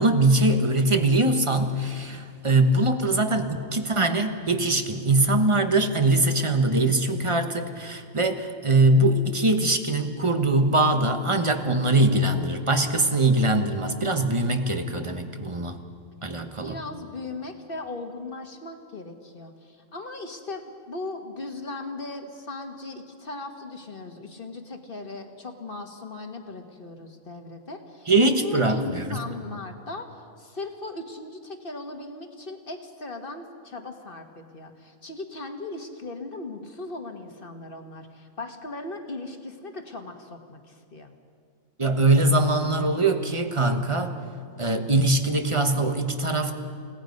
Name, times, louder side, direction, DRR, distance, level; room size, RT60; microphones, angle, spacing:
voice 1, 0.0-15.8 16.2-16.8 28.1-29.2 41.8-44.2 44.6-46.6, right 2 dB, 20° right, 6 dB, 1.2 m, -22 dB
voice 2, 16.6-28.1 28.4-30.1 30.4-41.1, left 2 dB, 40° left, 5 dB, 1.6 m, -38 dB
30.0 x 18.0 x 5.3 m, 2.2 s
omnidirectional pair, 1.5 m